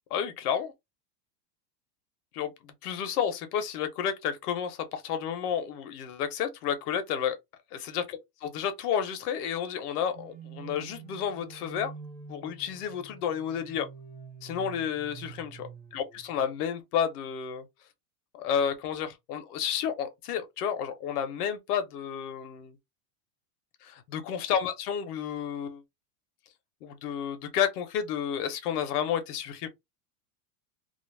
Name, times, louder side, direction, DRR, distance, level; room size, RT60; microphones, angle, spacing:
voice 1, 0.1-0.7 2.3-7.4 7.7-11.9 12.3-13.9 14.4-17.7 18.3-22.8 23.8-25.8 26.8-29.7, left 8 dB, 75° left, 1.0 m, -31 dB
sound 1, 10.1-16.4, right 6 dB, 20° right, 1.2 m, -47 dB
2.5 x 2.0 x 3.2 m
supercardioid pair, 140°, 46 cm